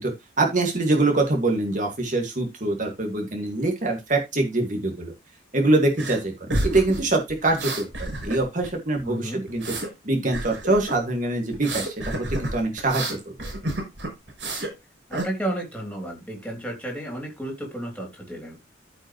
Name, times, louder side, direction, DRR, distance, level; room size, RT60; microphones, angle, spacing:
voice 1, 0.0-5.1 5.5-9.6 10.0-13.5, right 2 dB, 40° right, 2.2 m, -24 dB
sound 1, 6.0-6.2 6.5-8.7 9.0-9.9 10.3-11.0 11.5-14.7 15.1-15.2, right 1 dB, 65° right, 5.7 m, -30 dB
voice 2, 9.0-9.4 15.1-18.6, right 1 dB, 5° left, 3.1 m, -32 dB
14.0 x 5.3 x 3.2 m
head